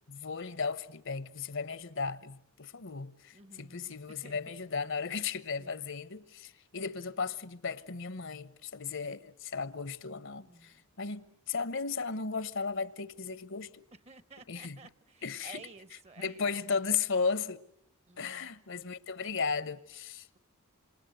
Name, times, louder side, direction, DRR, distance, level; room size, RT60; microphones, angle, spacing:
voice 1, 0.1-13.8 14.5-14.8 15.2-15.6 16.2-17.6 18.2-20.2, left 5 dB, 60° left, 1.0 m, -35 dB
voice 2, 3.3-4.6 5.6-5.9 10.4-10.8 14.1-16.7 18.1-18.5, right 3 dB, 30° right, 1.1 m, -53 dB
28.0 x 27.0 x 7.9 m
head